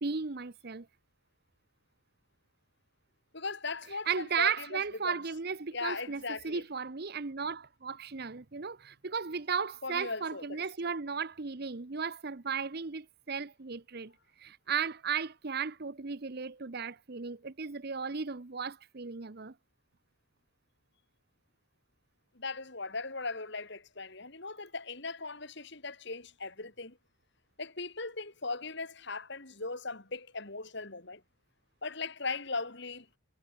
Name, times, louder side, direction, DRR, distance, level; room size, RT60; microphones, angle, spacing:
voice 1, 0.0-0.9 4.1-14.1 14.4-19.5, right 6 dB, 50° right, 0.8 m, -35 dB
voice 2, 3.3-5.2 5.7-6.6 9.8-10.6 22.3-27.0 27.6-31.2 31.8-33.2, left 3 dB, 55° left, 3.2 m, -38 dB
head